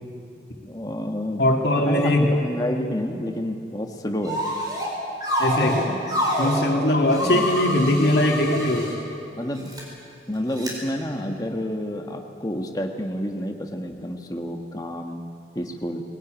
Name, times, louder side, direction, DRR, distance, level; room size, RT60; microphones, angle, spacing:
voice 1, 0.7-1.4 1.7-4.4 6.9-7.5 9.4-9.7 10.3-15.2 15.5-16.0, left 1 dB, 20° left, 3 dB, 1.5 m, -29 dB
voice 2, 1.4-2.3 5.4-5.9 6.4-8.9, left 1 dB, 65° left, 1 dB, 2.4 m, -20 dB
sound 1, 4.2-4.9 5.2-6.6 7.1-8.9 9.6-9.8 10.6-10.7, equal, 20° right, 4.5 m, -26 dB
20.5 x 19.0 x 9.0 m, 2.6 s
head